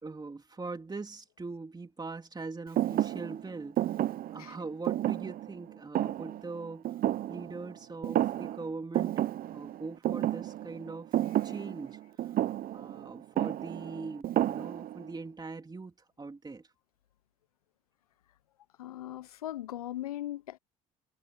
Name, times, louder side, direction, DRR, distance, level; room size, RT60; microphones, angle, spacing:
voice 1, 0.0-4.1 4.3-6.9 7.3-9.2 9.5-11.1 11.4-12.4 12.7-16.7, right 3 dB, 20° right, 3.3 m, -42 dB
Thump thud, 2.8-7.8 8.0-8.7 8.9-15.1, right 13 dB, 50° right, 0.9 m, -31 dB
voice 2, 18.8-20.6, left 13 dB, 85° left, 0.8 m, -39 dB
hypercardioid pair, 55°, 18 cm